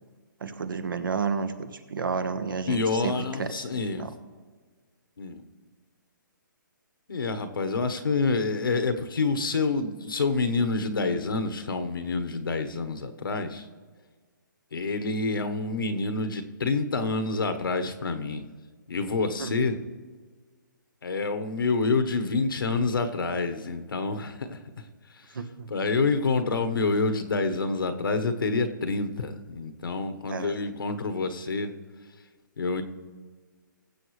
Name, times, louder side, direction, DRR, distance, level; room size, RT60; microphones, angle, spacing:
voice 1, 0.4-3.6 4.0-4.1 19.4-19.5 25.3-25.7 30.3-30.6, right 5 dB, 75° right, 10 dB, 1.2 m, -31 dB
voice 2, 2.7-4.1 5.2-5.4 7.1-13.7 14.7-18.4 18.9-19.8 21.0-24.8 25.2-25.3 25.7-31.7 32.6-32.8, left 3 dB, 85° left, 7 dB, 1.2 m, -27 dB
21.5 x 7.9 x 3.2 m, 1.5 s
hypercardioid pair, 155°, 11 cm